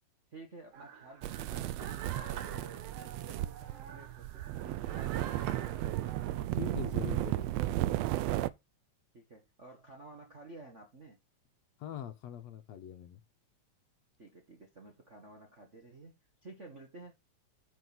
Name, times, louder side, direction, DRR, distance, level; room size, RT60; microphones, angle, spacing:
voice 1, 0.3-1.8 2.1-5.8 9.1-11.2 14.2-16.1 16.4-17.1, right 2 dB, 40° right, 1.1 m, -52 dB
sound 1, 0.7-6.5, right 7 dB, 60° right, 2.3 m, -48 dB
sound 2, 1.2-8.5, right 15 dB, 75° right, 1.6 m, -34 dB
voice 2, 6.5-7.5 11.8-13.2, left 9 dB, 70° left, 2.1 m, -42 dB
9.7 x 5.2 x 4.0 m
omnidirectional pair, 3.4 m